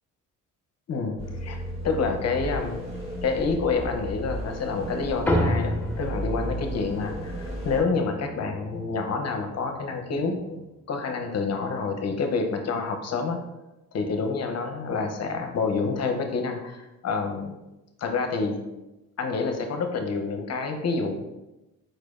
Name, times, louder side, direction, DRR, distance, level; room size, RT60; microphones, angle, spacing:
voice 1, 0.9-2.8 3.2-10.6 10.9-13.4 13.9-17.5 18.0-18.6 19.2-21.2, left 4 dB, 50° left, 5 dB, 0.8 m, -28 dB
sound 1, 1.2-7.8, equal, 20° right, 1.5 m, -34 dB
sound 2, 5.3-10.0, left 1 dB, 5° left, 0.7 m, -31 dB
4.9 x 4.4 x 2.5 m, 0.99 s
cardioid pair, 90°, 33 cm